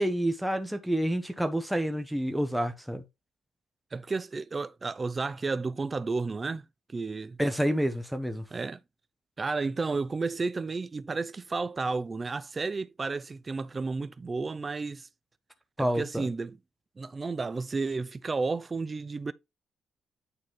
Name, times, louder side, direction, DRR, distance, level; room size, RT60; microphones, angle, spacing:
voice 1, 0.0-3.0 7.4-8.4 15.8-16.3, right 1 dB, ahead, 0.8 m, -28 dB
voice 2, 3.9-6.6 6.9-7.4 8.5-8.8 9.4-15.1 15.8-16.6 17.0-19.3, right 4 dB, 25° right, 0.5 m, -32 dB
8.8 x 4.2 x 3.2 m
cardioid pair, 115°, 0 cm